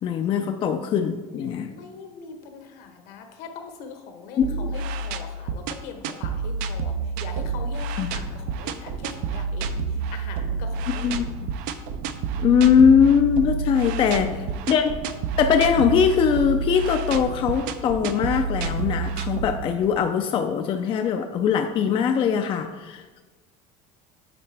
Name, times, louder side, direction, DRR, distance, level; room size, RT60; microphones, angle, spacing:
voice 1, 0.0-1.7 4.4-4.7 8.0-8.1 11.0-11.5 12.4-14.9 15.4-23.2, left 7 dB, 35° left, 6 dB, 0.4 m, -21 dB
voice 2, 1.7-11.2 13.6-14.5, left 5 dB, 70° left, 5 dB, 1.0 m, -42 dB
sound 1, 4.4-20.0, right 4 dB, 65° right, 0.5 m, -29 dB
8.7 x 4.0 x 3.3 m, 1.3 s
cardioid pair, 130°, 16 cm